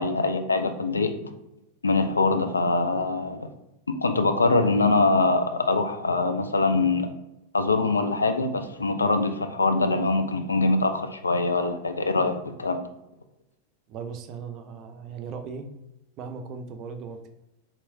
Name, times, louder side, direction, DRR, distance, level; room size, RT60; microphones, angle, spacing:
voice 1, 0.0-1.3 1.8-3.5 3.9-7.1 7.5-12.8, left 3 dB, 75° left, 7 dB, 0.3 m, -23 dB
voice 2, 13.9-15.7 16.2-17.3, right 5 dB, 40° right, 6 dB, 0.4 m, -38 dB
3.0 x 2.9 x 2.6 m, 0.91 s
figure-of-eight pair, 90°, 0 cm